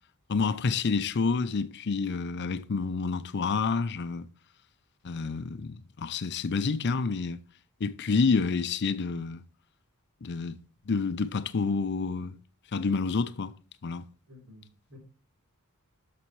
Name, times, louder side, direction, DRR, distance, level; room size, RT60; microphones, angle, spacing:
voice 1, 0.3-4.3 5.0-7.4 7.8-9.4 10.2-10.6 10.9-12.4 12.7-13.5 13.8-14.0, left 4 dB, 50° left, 0.5 m, -28 dB
voice 2, 14.3-15.0, left 1 dB, 70° right, 3.5 m, -52 dB
11.5 x 6.7 x 3.1 m
head